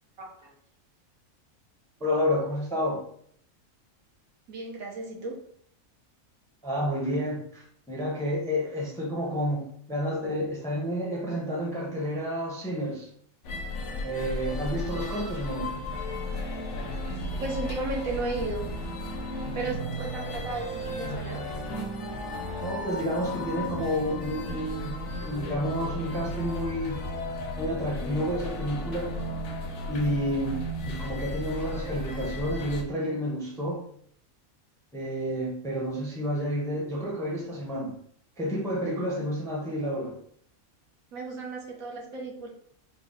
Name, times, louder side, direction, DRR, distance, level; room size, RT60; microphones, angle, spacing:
voice 1, 0.2-0.5 4.5-5.4 17.4-18.7 19.5-21.4 41.1-42.5, right 2 dB, 75° right, -1 dB, 1.4 m, -34 dB
voice 2, 2.0-3.0 6.6-13.1 14.0-15.7 22.6-27.0 27.6-29.1 29.9-33.8 34.9-37.9 38.4-40.1, equal, 5° left, -2 dB, 0.6 m, -30 dB
sound 1, 13.4-32.8, left 1 dB, 65° left, 0.9 m, -34 dB
4.4 x 2.2 x 3.6 m, 0.62 s
omnidirectional pair, 1.5 m